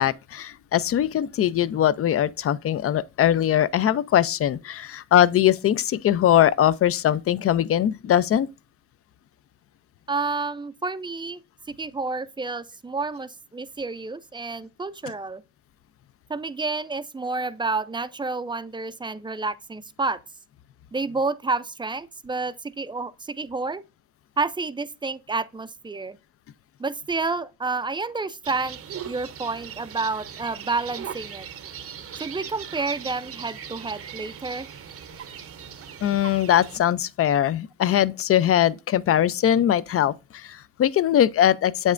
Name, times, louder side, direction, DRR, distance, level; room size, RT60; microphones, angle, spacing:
voice 1, 0.0-8.5 36.0-41.9, left 11 dB, 50° left, 0.5 m, -21 dB
voice 2, 10.1-11.4 11.7-15.4 16.3-20.2 20.9-23.8 24.4-26.2 26.8-28.8 29.0-31.5 32.1-34.7, right 3 dB, 15° right, 0.4 m, -29 dB
sound 1, 28.4-36.8, right 8 dB, 50° right, 0.7 m, -39 dB
8.0 x 5.3 x 2.5 m
cardioid pair, 90°, 30 cm